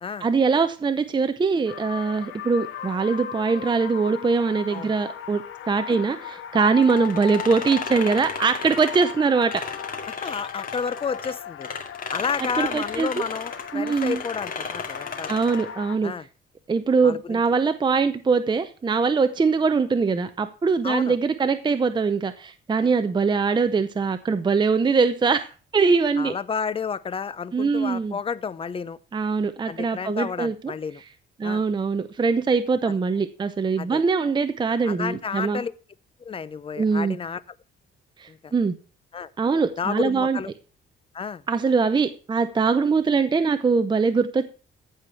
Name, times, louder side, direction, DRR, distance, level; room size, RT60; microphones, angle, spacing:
voice 1, 0.2-9.6 12.6-13.1 13.7-14.2 15.3-16.1 16.7-26.3 27.5-28.2 29.1-30.7 31.4-35.6 36.8-37.2 38.2-38.7 39.4-40.4 41.5-44.5, right 4 dB, 20° right, 0.7 m, -22 dB
sound 1, 1.7-16.0, left 10 dB, 80° left, 1.2 m, -37 dB
sound 2, 6.8-11.3 11.6-15.7, left 5 dB, 45° left, 2.2 m, -34 dB
voice 2, 10.1-11.7 12.1-15.4 16.0-16.3 17.0-17.4 20.8-21.2 26.2-29.0 29.7-31.0 31.4-31.6 33.8-34.0 34.8-35.7 36.2-37.4 38.3-38.5 39.1-39.3 39.8-40.5 41.1-41.4, left 6 dB, 25° left, 0.6 m, -31 dB
14.5 x 5.0 x 5.6 m
cardioid pair, 135°, 21 cm